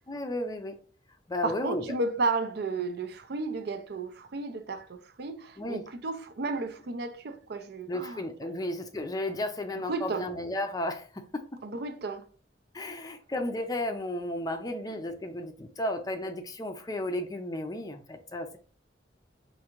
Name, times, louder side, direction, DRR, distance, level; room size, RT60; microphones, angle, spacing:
voice 1, 0.1-0.8 1.3-1.8 5.6-5.8 7.9-11.4 12.7-18.6, left 1 dB, 20° left, 0.5 m, -33 dB
voice 2, 1.4-8.5 9.8-10.3 11.6-12.3, right 3 dB, 65° right, 0.5 m, -33 dB
4.7 x 2.6 x 2.9 m
head